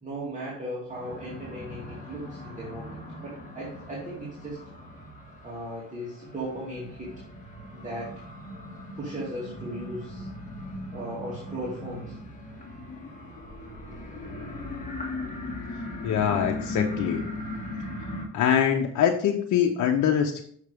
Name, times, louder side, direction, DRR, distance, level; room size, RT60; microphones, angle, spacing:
voice 1, 0.0-4.6 5.4-7.1 7.7-8.1 9.0-10.3 10.9-12.2, right 1 dB, 25° right, -7 dB, 2.4 m, -37 dB
sound 1, 0.9-18.3, left 1 dB, 25° left, 2.1 m, -38 dB
voice 2, 16.0-17.2 18.3-20.4, left 8 dB, 75° left, 3 dB, 0.8 m, -23 dB
6.6 x 6.4 x 3.5 m, 0.62 s
cardioid pair, 90°, 30 cm